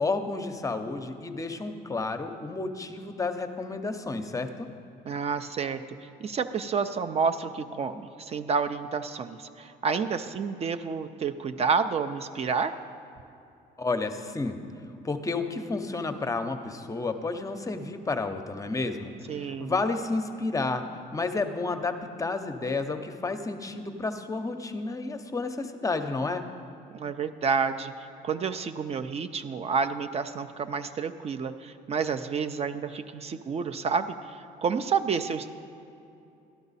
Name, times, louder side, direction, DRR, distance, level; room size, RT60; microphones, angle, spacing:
voice 1, 0.0-4.7 13.8-14.6 15.0-20.9 21.1-26.4, left 3 dB, 20° left, 8 dB, 0.6 m, -31 dB
voice 2, 5.1-12.8 19.3-19.7 26.9-35.5, right 5 dB, 40° right, 9 dB, 0.4 m, -29 dB
12.5 x 11.0 x 4.1 m, 2.7 s
cardioid pair, 110°, 17 cm